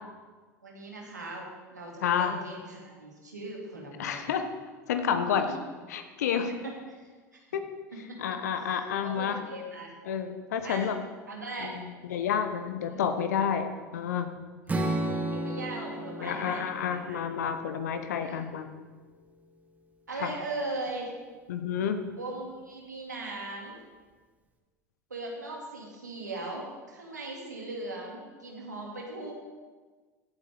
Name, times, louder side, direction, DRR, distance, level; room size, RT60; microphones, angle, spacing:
voice 1, 0.6-4.5 5.2-5.6 6.5-7.0 7.3-7.4 8.1-9.9 10.6-10.9 11.3-11.8 12.8-13.0 14.7-17.5 18.2-18.4 20.1-21.1 22.1-23.8 25.1-29.3, right 2 dB, 90° right, -1 dB, 2.2 m, -39 dB
voice 2, 2.0-2.4 4.0-4.4 4.9-5.5 5.9-6.5 7.5-7.6 8.2-9.4 10.1-11.0 11.6-13.7 13.9-14.3 16.2-18.7 20.2-20.3 21.5-22.0, left 8 dB, 70° left, 8 dB, 1.0 m, -29 dB
Strum, 14.7-18.9, right 1 dB, 15° right, 1.6 m, -34 dB
16.0 x 8.1 x 3.4 m, 1.4 s
figure-of-eight pair, 75°, 9 cm